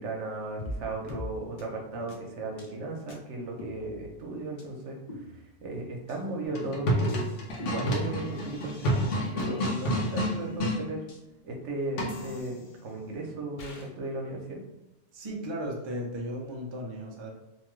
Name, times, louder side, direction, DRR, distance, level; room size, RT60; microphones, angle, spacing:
voice 1, 0.0-5.0 5.6-11.0 11.4-14.6, right 2 dB, 75° right, 0 dB, 1.0 m, -36 dB
sound 1, 0.6-0.8 1.1-1.3 1.6-1.7 2.1-2.2 2.6-2.7 3.1-3.2 3.6-4.2 4.6-4.7 5.1-5.7 6.1-6.2 6.6-9.2 9.6-10.5 11.1-11.2 12.1-13.0 13.6-13.9, left 1 dB, 55° left, 0.6 m, -44 dB
sound 2, 6.5-10.8 12.0-12.4, equal, 85° left, 1.0 m, -29 dB
voice 2, 15.1-17.3, equal, 40° right, -1 dB, 0.4 m, -35 dB
2.8 x 2.3 x 3.0 m, 0.99 s
omnidirectional pair, 1.2 m